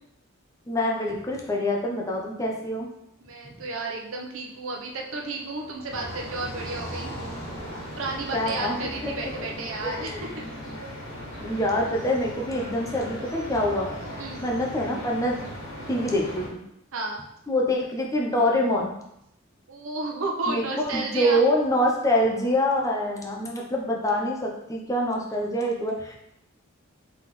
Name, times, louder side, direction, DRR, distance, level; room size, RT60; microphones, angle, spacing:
voice 1, 0.7-2.9 8.3-9.5 9.8-10.2 11.4-13.9 14.4-15.4 15.9-16.6 17.5-18.9 20.5-26.2, left 1 dB, 15° left, -1 dB, 0.6 m, -25 dB
voice 2, 3.2-7.1 7.9-10.1 10.5-10.6 14.2-14.4 16.9-17.2 19.7-21.4, right 3 dB, 85° right, 0 dB, 0.7 m, -32 dB
Car passing by, 3.8-11.0, right 1 dB, 45° left, 1.4 m, -44 dB
sound 1, 5.9-16.5, equal, 85° left, 1.7 m, -38 dB
4.0 x 3.6 x 3.1 m, 0.78 s
head